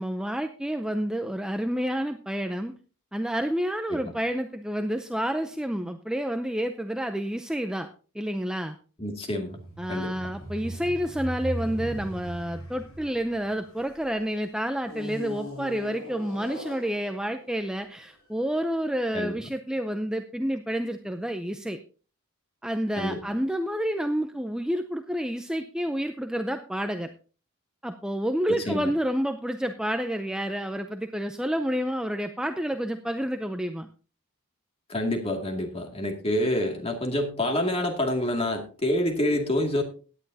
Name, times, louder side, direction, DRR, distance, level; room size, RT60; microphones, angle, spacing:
voice 1, 0.0-2.7 3.1-7.9 8.2-8.8 9.8-21.8 22.6-27.1 27.8-33.9, equal, 5° right, 6 dB, 0.5 m, -29 dB
voice 2, 9.0-9.6 9.9-10.1 19.1-19.4 23.0-23.2 28.5-28.9 34.9-39.8, left 1 dB, 25° left, 3 dB, 2.2 m, -27 dB
sound 1, 9.4-14.1 14.8-18.2, equal, 80° left, 6.3 m, -39 dB
17.0 x 10.0 x 2.7 m, 0.37 s
head